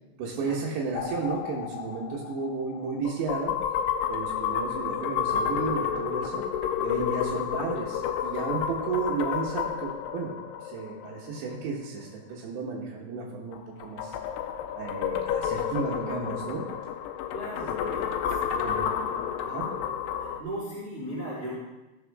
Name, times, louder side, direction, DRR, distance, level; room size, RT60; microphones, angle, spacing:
voice 1, 0.2-3.5 4.1-6.4 6.8-10.3 10.6-14.2 14.7-16.6 17.8-18.1 18.5-18.9 19.4-19.7, right 4 dB, 70° right, -4 dB, 3.4 m, -33 dB
sound 1, 0.9-11.5 13.5-20.4, left 8 dB, 80° left, 2.4 m, -31 dB
voice 2, 17.3-18.0 20.4-21.7, equal, 10° right, -10 dB, 3.5 m, -36 dB
18.5 x 6.6 x 3.6 m, 1.1 s
omnidirectional pair, 5.4 m